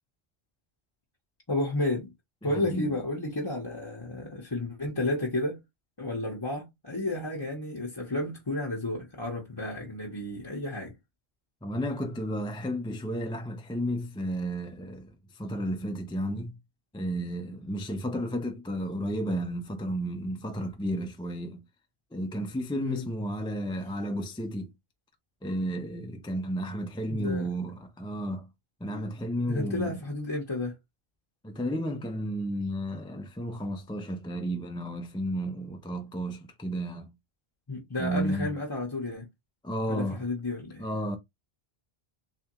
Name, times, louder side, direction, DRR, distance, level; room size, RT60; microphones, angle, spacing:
voice 1, 1.5-2.1 2.4-5.6 6.0-10.9 22.8-23.0 27.1-27.5 29.5-30.8 37.7-39.3 39.9-40.8, left 2 dB, 25° left, 0.9 m, -32 dB
voice 2, 2.4-2.9 11.6-16.6 16.9-21.6 22.1-24.7 25.4-28.5 28.8-30.0 31.4-37.1 38.0-38.5 39.6-40.3 40.8-41.2, equal, 5° left, 0.4 m, -32 dB
3.4 x 3.3 x 3.0 m
omnidirectional pair, 1.1 m